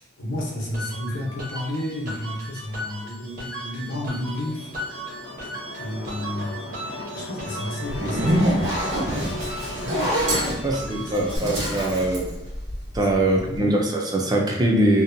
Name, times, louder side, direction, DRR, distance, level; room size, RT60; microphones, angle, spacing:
voice 1, 0.0-4.7 5.8-6.5 7.1-9.6 10.3-11.2 13.1-13.2 13.4-13.7, left 1 dB, 85° left, -2 dB, 0.7 m, -32 dB
sound 1, 0.7-11.4, right 1 dB, 45° right, 0.8 m, -37 dB
sound 2, 4.2-11.9, left 2 dB, 65° left, 0.3 m, -38 dB
Zipper (clothing), 7.9-13.1, equal, 80° right, 1.0 m, -25 dB
voice 2, 10.6-12.3 12.9-15.0, right 1 dB, 20° right, 0 dB, 0.3 m, -22 dB
2.6 x 2.1 x 2.5 m, 0.99 s
head